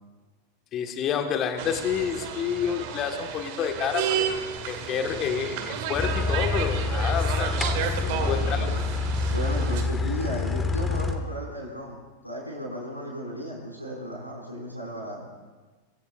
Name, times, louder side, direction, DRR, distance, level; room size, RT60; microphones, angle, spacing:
voice 1, 0.7-4.3 4.7-7.5 8.0-8.7, left 8 dB, 30° left, 6 dB, 1.6 m, -29 dB
sound 1, 1.6-9.8, right 7 dB, 50° right, 1.6 m, -32 dB
sound 2, 5.9-11.1, left 3 dB, 15° left, 1.5 m, -27 dB
voice 2, 8.0-8.8 9.3-12.0 12.2-15.3, equal, 90° left, -4 dB, 5.6 m, -35 dB
23.5 x 16.0 x 2.5 m, 1.3 s
figure-of-eight pair, 90°, 0 cm